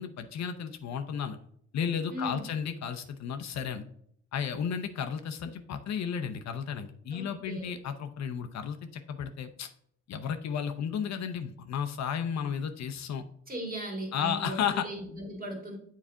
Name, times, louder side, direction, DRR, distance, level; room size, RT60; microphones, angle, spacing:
voice 1, 0.0-1.4 1.7-3.8 4.3-9.7 10.1-13.2 14.1-14.9, left 7 dB, 65° left, 7 dB, 0.7 m, -33 dB
voice 2, 2.1-2.4 7.1-7.7 13.5-15.8, equal, 30° right, 1 dB, 2.0 m, -37 dB
7.4 x 4.1 x 3.6 m, 0.67 s
cardioid pair, 90°, 30 cm